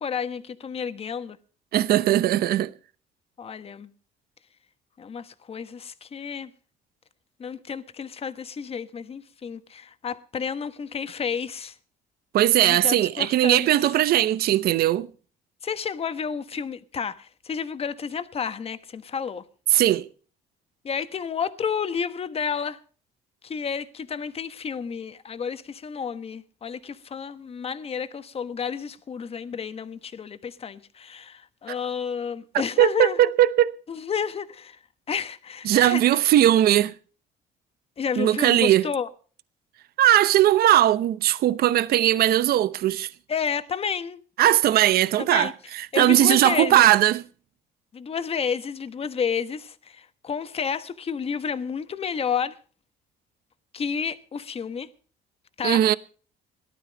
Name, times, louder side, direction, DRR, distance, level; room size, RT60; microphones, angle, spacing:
voice 1, 0.0-1.4 3.4-3.9 5.0-6.5 7.4-11.7 12.6-13.7 15.6-19.4 20.8-22.8 23.4-33.2 33.9-34.8 35.1-36.2 38.0-39.1 43.3-44.2 45.2-45.5 45.9-46.8 47.9-52.6 53.7-54.9 55.6-55.8, left 6 dB, 35° left, 1.2 m, -31 dB
voice 2, 1.7-2.7 12.3-15.1 19.7-20.1 32.8-33.7 35.7-36.9 38.2-38.9 40.0-43.1 44.4-47.2 55.6-56.0, right 13 dB, 65° right, 0.8 m, -19 dB
17.5 x 12.5 x 5.2 m
cardioid pair, 110°, 17 cm